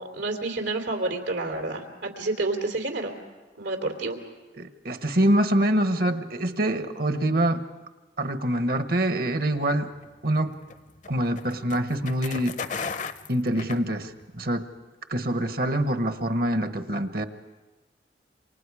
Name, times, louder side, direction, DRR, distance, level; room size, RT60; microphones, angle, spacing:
voice 1, 0.0-3.1 3.6-4.2, right 2 dB, 90° right, 3 dB, 3.1 m, -29 dB
voice 2, 4.6-7.6 8.2-9.9 10.2-10.6 11.1-12.6 13.3-14.6 15.1-17.2, right 1 dB, 55° right, 9 dB, 1.1 m, -25 dB
sound 1, 10.0-14.4, left 5 dB, 45° left, 0.7 m, -36 dB
28.0 x 25.0 x 4.9 m, 1.2 s
head